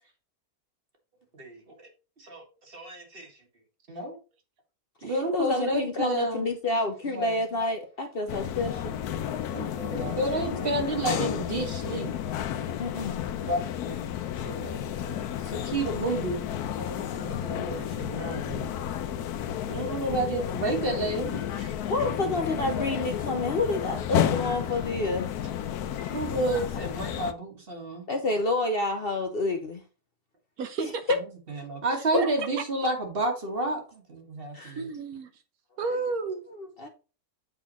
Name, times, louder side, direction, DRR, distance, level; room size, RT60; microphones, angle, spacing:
voice 1, 1.4-1.9 2.2-3.3 3.9-4.2 5.0-6.4 7.0-7.4 9.5-12.1 13.5-14.0 14.4-16.5 16.8-18.7 19.7-21.8 26.0-28.1 31.5-34.8, right 2 dB, 40° right, 1.7 m, -31 dB
voice 2, 5.0-9.0 12.8-13.2 21.9-25.3 28.1-29.8 30.8-31.2 32.1-32.2 34.5-34.8 36.6-36.9, left 2 dB, 50° left, 0.8 m, -28 dB
sound 1, 8.3-27.3, left 10 dB, 85° left, 1.2 m, -32 dB
voice 3, 30.6-31.2 32.2-32.5 34.7-35.4 35.8-36.4, right 4 dB, 70° right, 1.3 m, -32 dB
8.0 x 4.2 x 4.2 m
omnidirectional pair, 1.6 m